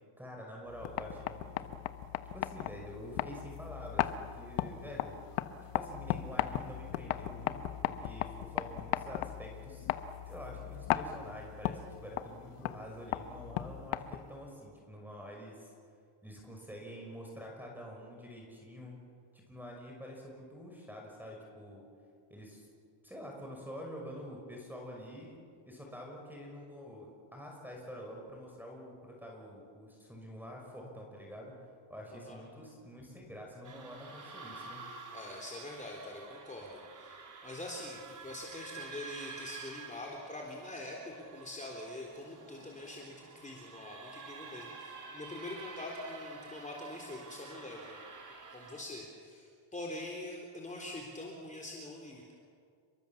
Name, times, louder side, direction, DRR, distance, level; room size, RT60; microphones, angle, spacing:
voice 1, 0.2-1.7 2.3-5.2 5.7-9.9 10.3-15.7 16.2-19.0 19.3-21.8 22.3-22.7 23.0-31.5 31.9-34.8, equal, 5° right, -1 dB, 6.0 m, -47 dB
sound 1, 0.7-14.4, left 12 dB, 90° left, 1.4 m, -37 dB
sound 2, 33.6-48.8, right 4 dB, 35° right, 4.3 m, -49 dB
voice 2, 35.1-37.2 37.4-48.0 48.5-52.3, left 1 dB, 15° left, -1 dB, 3.8 m, -44 dB
30.0 x 22.5 x 7.4 m, 2.2 s
cardioid pair, 125°, 50 cm